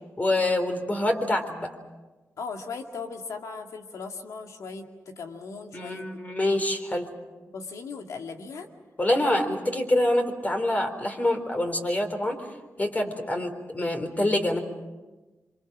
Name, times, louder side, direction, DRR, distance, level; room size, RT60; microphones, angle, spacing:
voice 1, 0.2-1.7 5.7-7.1 9.0-12.5 12.8-14.6, left 1 dB, 30° left, 5 dB, 4.0 m, -26 dB
voice 2, 2.4-6.1 7.5-8.7 9.1-9.4, left 4 dB, 85° left, 4 dB, 2.3 m, -38 dB
26.0 x 25.5 x 6.2 m, 1.2 s
cardioid pair, 65°, 5 cm